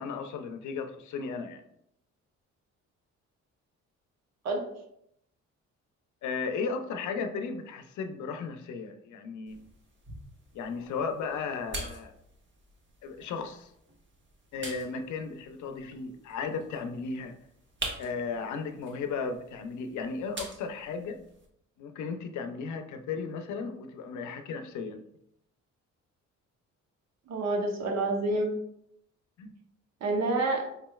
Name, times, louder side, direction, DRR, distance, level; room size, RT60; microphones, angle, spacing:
voice 1, 0.0-1.6 6.2-9.6 10.5-12.1 13.0-13.7 14.5-17.3 18.0-21.2 21.8-25.0 29.4-29.5, left 5 dB, 75° left, 6 dB, 0.6 m, -35 dB
sound 1, 9.5-21.5, right 2 dB, 40° right, 1.0 m, -45 dB
voice 2, 27.3-28.5 30.0-30.6, right 2 dB, 60° right, 3 dB, 0.9 m, -28 dB
5.0 x 3.1 x 2.3 m, 0.75 s
cardioid pair, 90°, 30 cm